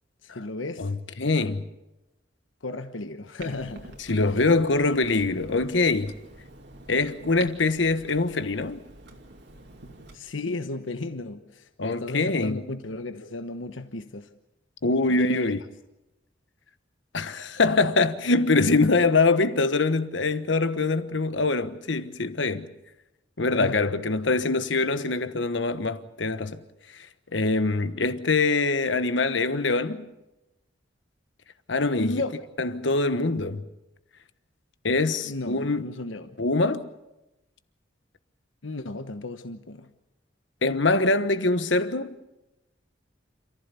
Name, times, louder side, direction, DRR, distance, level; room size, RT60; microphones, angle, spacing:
voice 1, 0.2-0.9 2.6-3.9 10.1-14.3 15.1-15.5 23.5-23.9 32.0-32.5 35.2-36.4 38.6-39.9, left 2 dB, 90° left, 1.2 m, -34 dB
voice 2, 0.8-1.6 4.1-6.1 6.9-8.8 11.8-12.6 14.8-15.6 17.1-22.7 23.4-26.6 27.3-30.1 31.7-32.2 32.6-33.6 34.8-35.8 36.4-36.9 40.6-42.2, left 3 dB, 70° left, 1.3 m, -24 dB
Clock, 3.4-10.2, right 2 dB, 60° right, 2.7 m, -47 dB
28.0 x 15.0 x 8.4 m
head